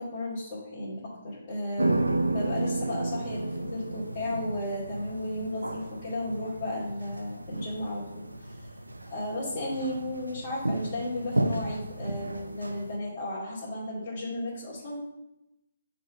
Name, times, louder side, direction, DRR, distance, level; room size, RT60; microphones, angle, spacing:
voice 1, 0.0-8.7 9.1-15.0, left 1 dB, 30° left, -11 dB, 2.4 m, -34 dB
sound 1, 1.8-13.0, right 2 dB, 90° right, 0.7 m, -33 dB
6.5 x 3.9 x 5.4 m, 0.89 s
figure-of-eight pair, 140°, 0 cm